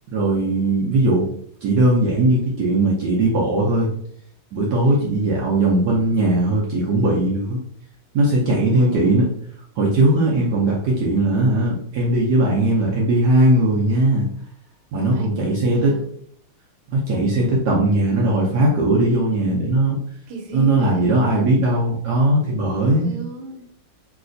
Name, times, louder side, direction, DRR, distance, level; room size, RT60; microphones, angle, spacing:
voice 1, 0.1-1.3 1.6-3.9 4.5-7.6 8.1-9.3 9.8-14.3 14.9-16.0 16.9-20.0 20.5-23.1, right 2 dB, 70° right, -3 dB, 1.0 m, -19 dB
voice 2, 4.8-5.2 8.7-9.1 14.9-16.1 20.3-21.3 22.9-23.7, right 3 dB, 90° right, 1 dB, 1.5 m, -36 dB
3.2 x 2.8 x 2.5 m, 0.65 s
omnidirectional pair, 2.3 m